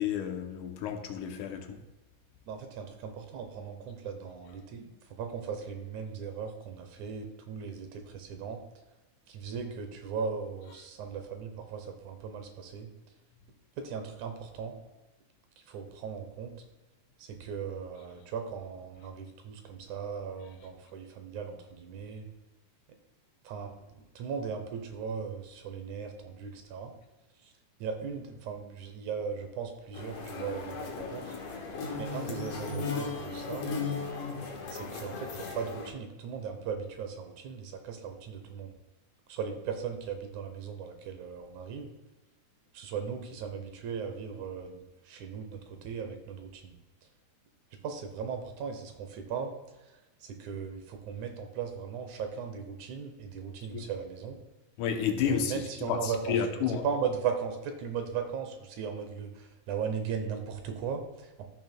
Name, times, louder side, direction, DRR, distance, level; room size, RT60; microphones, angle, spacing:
voice 1, 0.0-1.8 53.7-53.8 54.8-56.8, left 8 dB, 80° left, 2.2 m, -31 dB
voice 2, 2.5-8.6 9.3-12.9 13.8-14.8 15.7-16.6 17.3-22.3 23.4-23.7 24.2-26.9 27.8-31.3 32.0-33.7 34.7-38.8 39.3-41.9 42.7-46.8 47.8-49.5 50.2-54.4 55.3-61.5, right 6 dB, 75° right, 2.2 m, -37 dB
sound 1, 29.9-35.9, left 4 dB, 60° left, 2.1 m, -36 dB
14.5 x 6.2 x 2.2 m
omnidirectional pair, 3.6 m